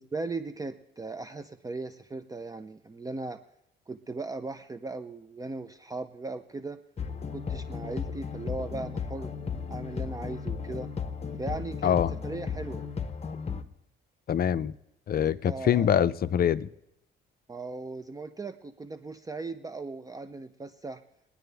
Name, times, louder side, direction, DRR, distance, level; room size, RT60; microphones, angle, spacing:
voice 1, 0.0-3.4 3.9-6.8 7.3-9.3 9.7-10.9 11.4-12.0 12.2-12.9 15.4-15.9 17.5-21.0, right 3 dB, 15° right, 0.5 m, -38 dB
sound 1, 7.0-13.6, left 6 dB, 30° left, 0.9 m, -35 dB
voice 2, 11.8-12.2 14.3-14.7 15.1-16.7, left 9 dB, 50° left, 0.5 m, -24 dB
24.0 x 9.7 x 3.4 m
cardioid pair, 90°, 20 cm